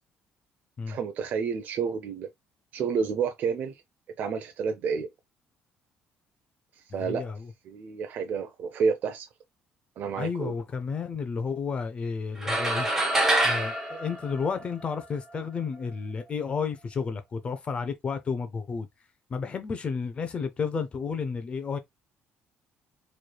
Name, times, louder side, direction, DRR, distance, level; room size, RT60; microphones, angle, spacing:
voice 1, 0.9-2.3 2.7-3.8 4.2-5.1 6.8-7.2 7.6-9.3 10.0-10.5, right 6 dB, 50° right, 0.5 m, -30 dB
voice 2, 6.9-7.5 10.2-12.9 13.4-18.9 19.3-21.8, left 5 dB, 30° left, 0.6 m, -32 dB
sound 1, 12.4-15.0, right 1 dB, 10° right, 1.0 m, -26 dB
4.5 x 3.2 x 2.2 m
cardioid pair, 155°, 4 cm